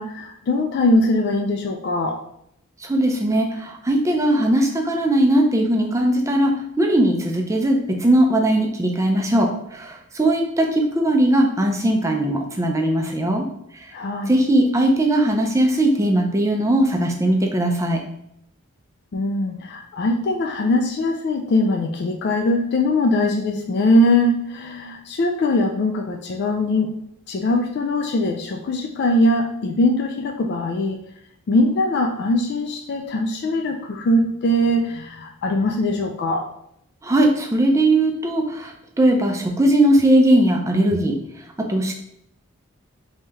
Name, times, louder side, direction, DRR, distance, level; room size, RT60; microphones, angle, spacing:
voice 1, 0.0-2.2 13.9-14.3 19.1-26.9 27.3-31.0 31.5-36.5, left 1 dB, 50° left, 3 dB, 0.3 m, -21 dB
voice 2, 2.8-13.5 14.3-18.0 37.0-38.7 39.0-41.2 41.6-41.9, right 1 dB, 15° right, 2 dB, 0.4 m, -19 dB
3.1 x 2.8 x 3.5 m, 0.75 s
head